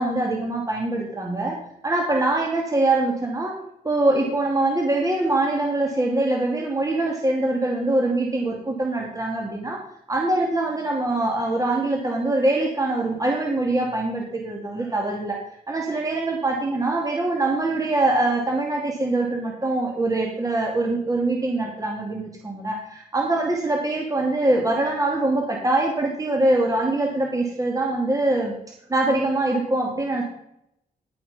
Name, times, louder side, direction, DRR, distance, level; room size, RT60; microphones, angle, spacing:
voice 1, 0.0-1.6 1.8-3.6 3.8-9.8 10.1-15.4 15.7-28.5 28.9-30.2, right 2 dB, 20° right, 0 dB, 2.6 m, -23 dB
11.0 x 8.2 x 5.5 m, 0.75 s
cardioid pair, 95°, 16 cm